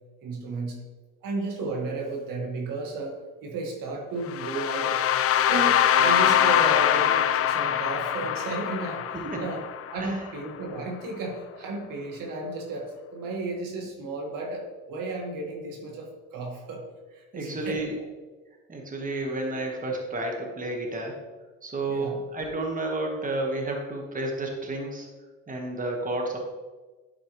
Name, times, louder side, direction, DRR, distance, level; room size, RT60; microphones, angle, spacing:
voice 1, 0.2-0.8 1.2-5.0 5.3-9.6 9.9-16.8 17.1-17.8 21.9-22.2, right 3 dB, 75° right, 1 dB, 1.7 m, -33 dB
sound 1, 4.3-10.3, left 10 dB, 45° left, 0.5 m, -23 dB
voice 2, 17.3-17.9 18.7-21.2 21.6-25.1 25.5-26.4, right 2 dB, 25° right, 1 dB, 1.4 m, -31 dB
11.0 x 4.4 x 3.1 m, 1.3 s
cardioid pair, 95°, 33 cm